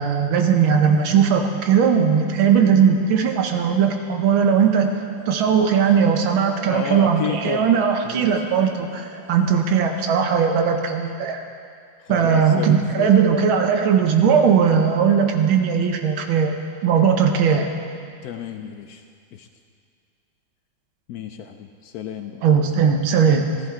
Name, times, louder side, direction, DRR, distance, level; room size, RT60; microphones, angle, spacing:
voice 1, 0.0-4.9 5.3-11.4 12.1-16.5 16.8-17.7 22.4-23.5, right 7 dB, 90° right, 4 dB, 1.7 m, -18 dB
sound 1, 1.0-10.0, left 1 dB, 70° right, 4.4 m, -40 dB
voice 2, 6.7-8.4 12.0-13.2 18.2-19.0 19.3-19.5 21.1-22.5, left 8 dB, 80° left, 7 dB, 0.8 m, -32 dB
15.0 x 14.0 x 3.7 m, 2.2 s
omnidirectional pair, 2.2 m